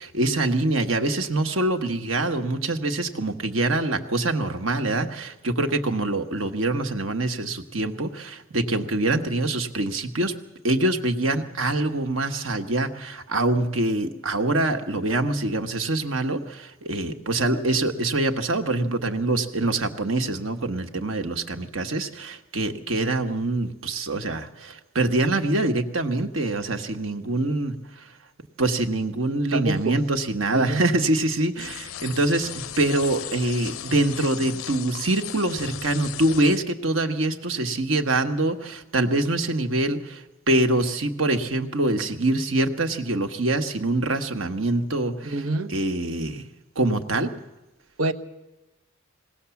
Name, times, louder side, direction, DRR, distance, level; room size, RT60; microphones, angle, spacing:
voice 1, 0.0-10.3 10.6-28.1 28.6-46.5 46.7-47.3, right 2 dB, 70° right, 6 dB, 1.4 m, -25 dB
voice 2, 29.5-30.0 30.5-30.8 45.2-45.7 48.0-48.1, right 2 dB, 90° right, 10 dB, 1.1 m, -26 dB
sound 1, 31.6-36.6, left 10 dB, 80° left, 0.6 m, -37 dB
20.5 x 18.0 x 7.1 m, 1.0 s
head